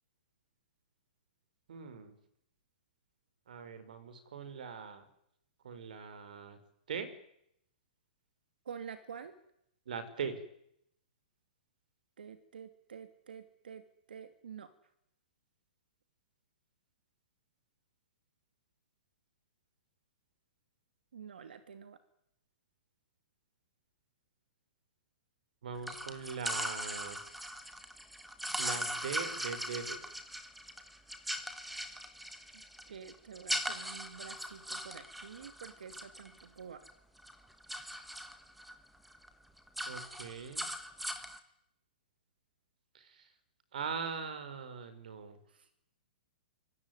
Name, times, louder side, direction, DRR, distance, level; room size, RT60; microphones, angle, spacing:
voice 1, 1.7-2.2 3.5-5.0 5.6-7.1 9.9-10.4 25.6-27.2 28.6-30.0 39.9-40.7 42.9-43.3 43.7-45.4, right 6 dB, 60° right, 12 dB, 5.1 m, -41 dB
voice 2, 8.6-9.3 12.2-14.7 21.1-22.0 32.5-36.8 45.5-45.7, right 7 dB, 85° right, 10 dB, 2.6 m, -48 dB
sound 1, 25.8-36.9 37.2-38.7 39.1-39.3 39.6-41.4, equal, ahead, 1.4 m, -40 dB
26.0 x 23.0 x 9.7 m, 0.78 s
hypercardioid pair, 175°, 5 cm